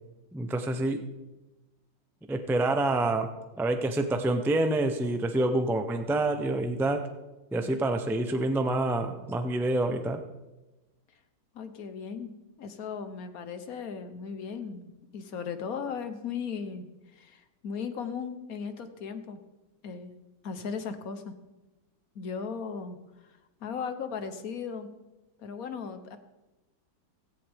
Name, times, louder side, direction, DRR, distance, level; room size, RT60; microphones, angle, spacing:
voice 1, 0.3-1.0 2.3-7.1 7.5-10.2, right 2 dB, 5° right, 6 dB, 0.3 m, -27 dB
voice 2, 11.5-12.3 12.6-19.4 19.8-20.1 20.4-21.3 22.1-23.0 23.6-24.9 25.4-26.2, left 6 dB, 60° left, 9 dB, 1.3 m, -37 dB
17.0 x 14.5 x 3.6 m, 1.1 s
omnidirectional pair, 1.9 m